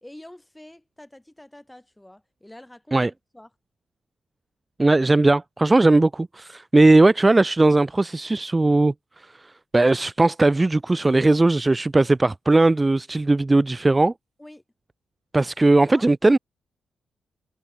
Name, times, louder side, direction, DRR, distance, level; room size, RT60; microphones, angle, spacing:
voice 1, 0.0-3.0 3.3-3.5 14.4-14.6 15.9-16.1, left 1 dB, 10° left, 3.0 m, -46 dB
voice 2, 4.8-14.1 15.3-16.4, right 2 dB, 20° right, 0.4 m, -18 dB
cardioid pair, 65°, 0 cm